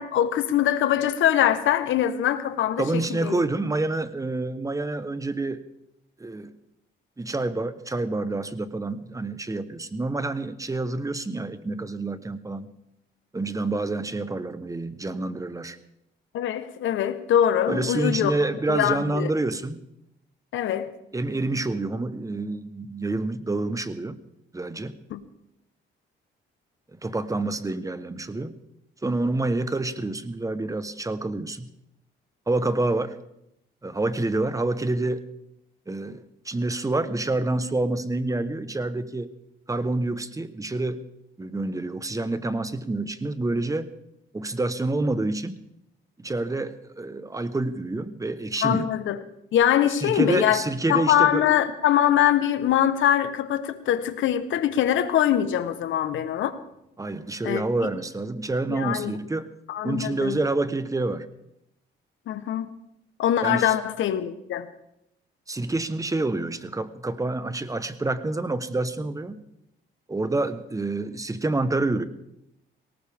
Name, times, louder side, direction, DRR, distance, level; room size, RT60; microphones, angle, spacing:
voice 1, 0.0-2.8 3.2-3.4 16.3-18.3 18.7-19.3 20.5-20.9 25.1-25.2 48.6-49.2 49.5-50.6 50.9-56.6 57.4-57.6 58.7-59.1 59.7-60.4 62.3-62.8 63.2-64.7, left 10 dB, 80° left, 1.2 m, -23 dB
voice 2, 2.8-5.6 6.2-6.5 7.2-12.7 13.3-15.8 17.7-19.8 21.1-24.2 24.5-25.0 26.9-28.5 29.0-31.7 32.5-33.2 33.8-35.2 35.9-39.3 39.7-41.0 41.4-43.9 44.3-45.6 46.2-48.9 50.0-51.4 57.0-59.5 59.8-61.3 63.4-63.7 65.5-69.4 70.1-72.0, right 2 dB, 15° right, 1.1 m, -27 dB
18.5 x 18.0 x 3.6 m
cardioid pair, 90°, 20 cm